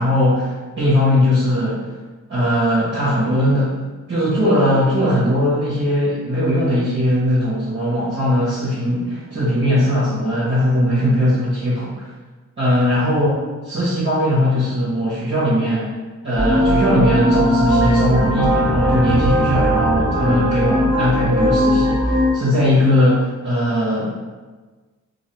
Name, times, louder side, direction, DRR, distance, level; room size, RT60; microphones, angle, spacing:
voice 1, 0.0-1.8 2.3-3.8 4.1-12.1 12.6-13.3 13.6-15.9 16.2-24.2, equal, 35° right, -10 dB, 0.8 m, -19 dB
sound 1, 16.3-22.3, equal, 5° right, 0.8 m, -18 dB
2.3 x 2.2 x 3.0 m, 1.3 s
wide cardioid pair, 75°, 33 cm